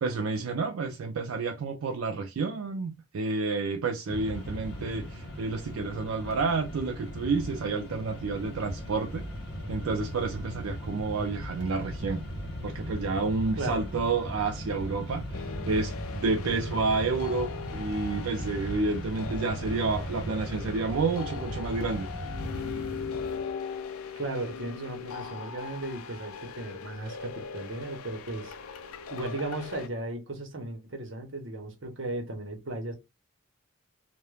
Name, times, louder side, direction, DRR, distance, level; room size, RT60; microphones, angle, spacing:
voice 1, 0.0-9.2 9.7-12.2 12.6-22.1, right 4 dB, 75° right, 0.4 m, -30 dB
Mechanisms, 4.1-23.5, equal, 50° left, 0.7 m, -38 dB
sound 1, 15.3-29.9, left 6 dB, 85° left, 0.4 m, -40 dB
voice 2, 24.2-28.5 29.1-32.9, right 2 dB, 60° right, 0.8 m, -36 dB
2.3 x 2.1 x 3.1 m
head